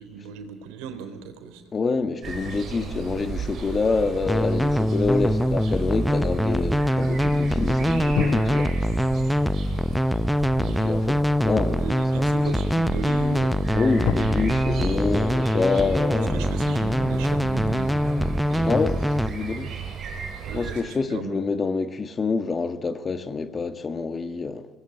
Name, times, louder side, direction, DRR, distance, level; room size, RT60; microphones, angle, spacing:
voice 1, 0.0-1.6 10.6-11.0 11.8-13.7 16.1-18.3 20.4-21.4, right 5 dB, 75° right, 4.0 m, -37 dB
voice 2, 1.7-8.7 10.6-11.9 12.1-12.2 13.7-16.5 18.5-19.0 19.3-19.7 20.5-24.7, left 4 dB, 30° left, 1.8 m, -27 dB
sound 1, 2.2-20.8, right 6 dB, 55° right, 6.9 m, -34 dB
sound 2, 2.7-5.3 8.1-11.5 12.2-12.3 14.0-14.1, left 10 dB, 60° left, 1.5 m, -35 dB
sound 3, 4.2-19.3, equal, ahead, 0.7 m, -23 dB
24.5 x 20.0 x 9.2 m
supercardioid pair, 75°, 0 cm